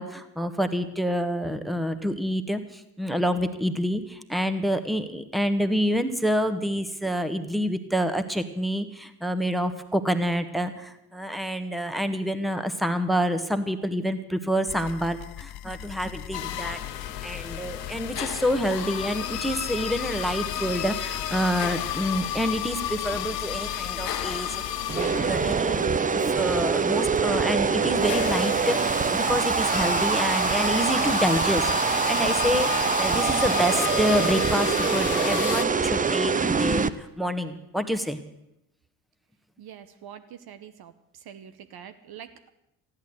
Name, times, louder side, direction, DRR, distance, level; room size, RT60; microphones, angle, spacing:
voice 1, 0.0-24.6 24.9-25.8 26.1-38.2, equal, ahead, 10 dB, 1.5 m, -27 dB
sound 1, 14.7-25.5, left 13 dB, 50° left, 0.6 m, -40 dB
sound 2, 16.3-35.6, left 10 dB, 90° left, 0.8 m, -33 dB
sound 3, 24.9-36.9, right 5 dB, 15° right, 0.6 m, -24 dB
voice 2, 39.6-42.5, right 9 dB, 50° right, 10 dB, 1.1 m, -45 dB
14.5 x 10.5 x 7.9 m, 0.84 s
hypercardioid pair, 50°, 47 cm